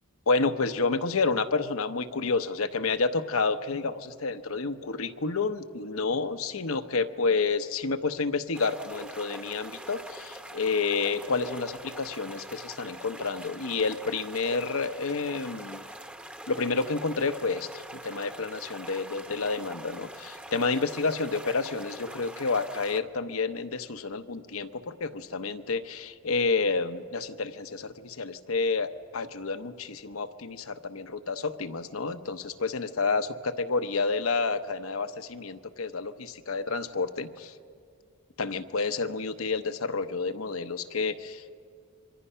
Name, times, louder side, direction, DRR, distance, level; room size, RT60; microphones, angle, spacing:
voice 1, 0.3-15.8 16.5-37.5 38.4-41.6, left 4 dB, 80° left, 9 dB, 0.9 m, -29 dB
sound 1, 8.5-23.0, right 1 dB, 5° right, 0.8 m, -44 dB
27.0 x 24.0 x 5.7 m, 2.3 s
head